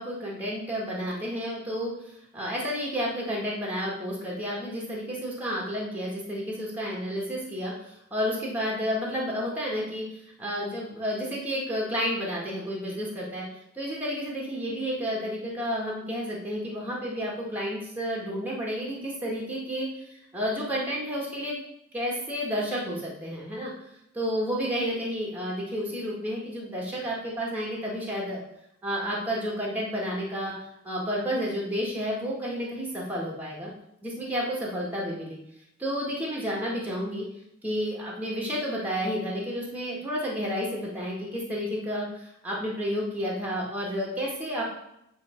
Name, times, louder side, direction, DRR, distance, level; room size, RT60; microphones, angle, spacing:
voice 1, 0.0-10.1 10.4-13.5 13.7-21.5 21.9-23.7 24.1-28.4 28.8-30.5 30.8-33.7 34.0-35.4 35.8-37.2 37.6-44.6, equal, 10° right, -4 dB, 1.7 m, -31 dB
8.8 x 3.5 x 5.1 m, 0.80 s
head